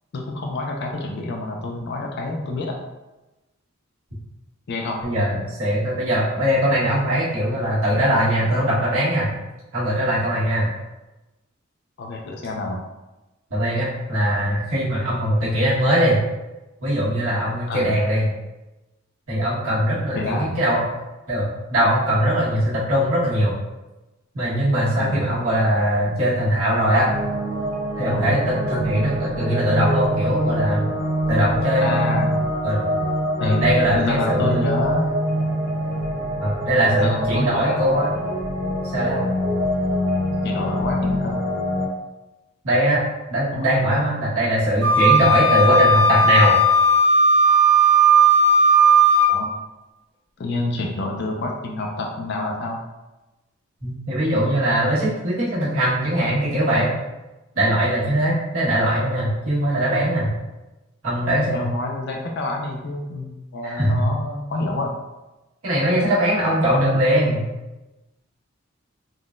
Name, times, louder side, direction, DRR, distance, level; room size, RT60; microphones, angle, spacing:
voice 1, 0.1-2.8 4.7-5.1 12.0-12.8 17.7-17.9 19.8-20.5 24.9-25.2 28.1-28.3 31.8-32.3 33.4-35.1 36.9-38.1 40.4-41.4 43.5-43.6 49.3-49.5 50.4-52.8 61.5-64.9, left 2 dB, 50° left, 1 dB, 0.4 m, -28 dB
voice 2, 5.0-9.3 9.7-10.7 13.5-16.2 16.8-18.3 19.3-20.8 21.3-23.5 24.3-27.1 28.0-30.8 31.3-32.2 32.6-32.9 33.4-34.8 36.4-38.1 38.9-39.3 42.6-43.0 43.3-46.6 53.8-56.9 57.5-60.3 61.0-61.6 63.6-64.1 65.6-67.4, equal, 85° right, -8 dB, 1.3 m, -21 dB
sound 1, 27.0-41.9, equal, 20° right, 0.9 m, -25 dB
Wind instrument woodwind instrument, 44.8-49.3, right 2 dB, 50° right, 0.9 m, -15 dB
3.6 x 2.1 x 2.4 m, 1.1 s
head